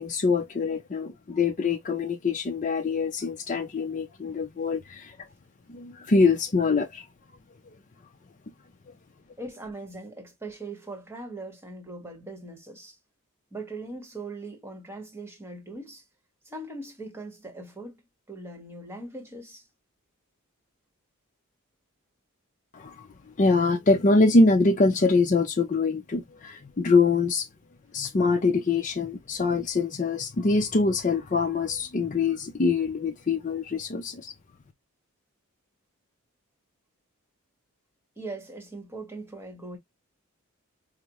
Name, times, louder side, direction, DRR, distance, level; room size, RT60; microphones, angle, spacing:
voice 1, 0.0-5.1 5.7-7.0 22.7-23.1 23.4-27.5 27.9-34.3, left 3 dB, 35° left, 0.4 m, -24 dB
voice 2, 9.4-13.0 13.5-16.0 16.4-18.0 18.3-19.7 38.2-39.8, right 2 dB, 10° right, 1.1 m, -40 dB
4.9 x 2.0 x 2.9 m
head